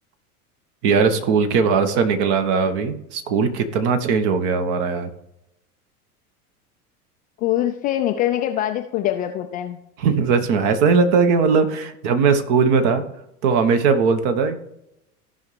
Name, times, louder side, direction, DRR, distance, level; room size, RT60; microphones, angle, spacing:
voice 1, 0.8-5.1 10.0-13.0 13.4-14.6, right 5 dB, 50° right, 8 dB, 1.3 m, -19 dB
voice 2, 7.4-9.8, left 12 dB, 20° left, 5 dB, 0.3 m, -23 dB
15.0 x 5.6 x 3.3 m, 0.84 s
figure-of-eight pair, 85°, 45 cm